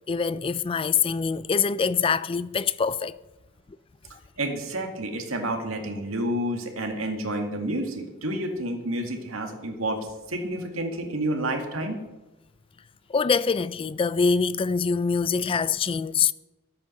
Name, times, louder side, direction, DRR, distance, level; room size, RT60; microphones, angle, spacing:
voice 1, 0.1-3.2 13.1-16.3, left 5 dB, 25° left, 0.3 m, -24 dB
voice 2, 4.4-10.0 10.3-12.0, right 1 dB, 85° right, 2.1 m, -29 dB
13.5 x 8.5 x 6.5 m
head